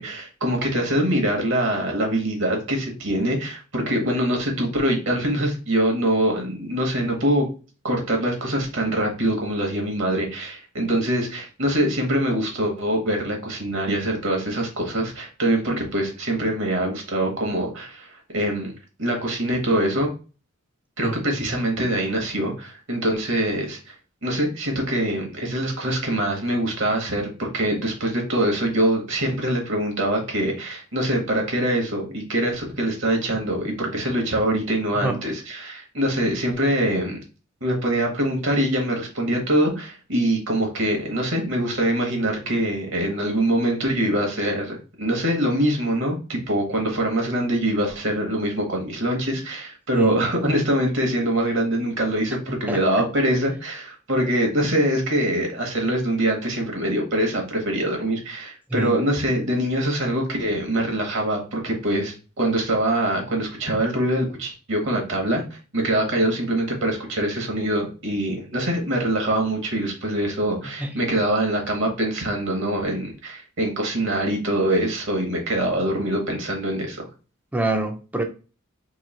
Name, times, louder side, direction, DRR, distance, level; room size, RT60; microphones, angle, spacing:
voice 1, 0.0-7.5 7.8-18.7 19.0-20.1 21.0-23.9 24.2-37.2 37.6-77.1, right 1 dB, 60° right, 1.1 m, -24 dB
voice 2, 52.7-53.0 58.7-59.0 70.8-70.9 77.5-78.2, right 2 dB, 5° right, 0.4 m, -26 dB
3.0 x 2.7 x 4.0 m
head